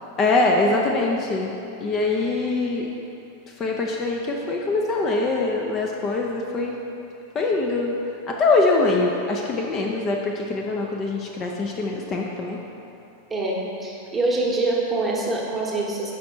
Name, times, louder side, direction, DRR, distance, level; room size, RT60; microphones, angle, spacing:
voice 1, 0.2-1.5 1.8-2.9 3.6-6.8 7.3-8.0 8.3-12.6, left 3 dB, 30° left, 0 dB, 0.5 m, -23 dB
voice 2, 13.3-16.1, right 2 dB, 15° right, -3 dB, 1.0 m, -25 dB
5.1 x 4.9 x 4.4 m, 2.7 s
figure-of-eight pair, 90°, 0 cm